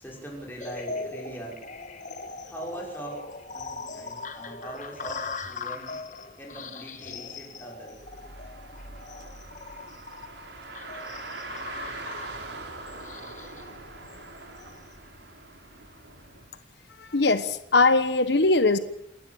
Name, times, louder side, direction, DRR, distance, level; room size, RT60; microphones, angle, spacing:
voice 1, 0.0-1.6 2.4-3.3 3.5-6.0 6.4-8.0, right 1 dB, 10° left, -2 dB, 6.2 m, -41 dB
sound 1, 0.6-14.9, left 4 dB, 45° left, 1.9 m, -40 dB
Car, 8.0-16.5, right 3 dB, 75° right, 4.0 m, -42 dB
voice 2, 17.0-18.8, left 3 dB, 70° left, 11 dB, 1.2 m, -21 dB
29.5 x 12.0 x 9.0 m, 0.81 s
head